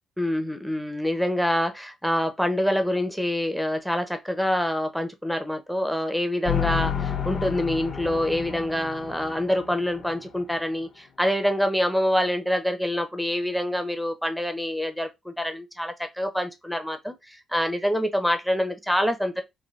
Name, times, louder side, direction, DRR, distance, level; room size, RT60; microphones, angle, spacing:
voice 1, 0.2-19.4, equal, ahead, 0.5 m, -26 dB
sound 1, 6.5-10.5, left 8 dB, 55° left, 0.6 m, -31 dB
3.1 x 2.2 x 2.4 m
cardioid pair, 90°, 0 cm